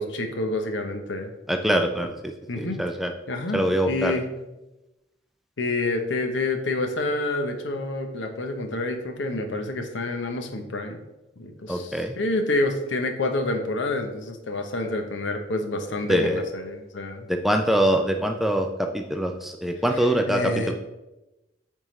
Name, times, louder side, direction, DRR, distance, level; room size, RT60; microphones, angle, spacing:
voice 1, 0.0-1.3 2.5-2.8 3.3-4.2 5.6-11.0 11.4-11.9 12.2-17.3 20.3-20.7, left 2 dB, 80° left, 5 dB, 0.8 m, -28 dB
voice 2, 1.5-3.1 3.5-4.2 11.7-12.1 16.1-16.4 17.3-20.7, equal, ahead, 4 dB, 0.3 m, -24 dB
8.8 x 3.6 x 3.1 m, 1.0 s
head